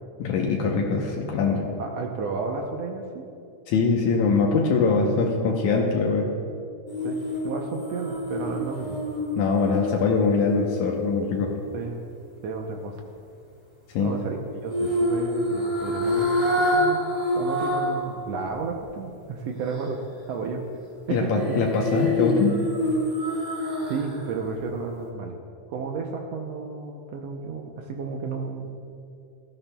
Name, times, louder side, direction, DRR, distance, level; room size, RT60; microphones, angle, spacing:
voice 1, 0.2-1.7 3.7-6.3 9.4-11.5 13.9-14.1 21.1-22.6, left 4 dB, 80° left, -1 dB, 2.3 m, -23 dB
voice 2, 1.8-3.3 4.7-5.2 7.0-9.0 11.7-12.0 12.4-13.0 14.0-20.0 20.3-20.7 21.1-21.6 23.9-25.4 25.7-28.7, right 4 dB, 70° right, 2 dB, 1.8 m, -32 dB
sound 1, 6.9-11.1 14.7-18.1 18.4-18.5 21.4-24.2 24.6-24.7, left 1 dB, 10° left, 2.8 m, -27 dB
17.5 x 13.5 x 2.3 m, 2.5 s
omnidirectional pair, 3.4 m